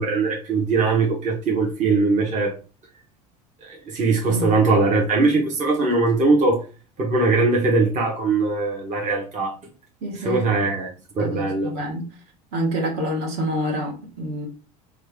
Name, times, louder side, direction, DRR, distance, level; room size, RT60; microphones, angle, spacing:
voice 1, 0.0-2.5 3.9-6.6 7.0-9.5 10.2-10.9 11.2-11.7, right 3 dB, 40° right, -1 dB, 1.0 m, -20 dB
voice 2, 10.0-10.5 11.2-12.1 12.5-14.5, equal, 55° right, 1 dB, 1.1 m, -27 dB
3.1 x 2.4 x 3.6 m, 0.34 s
hypercardioid pair, 80°, 20 cm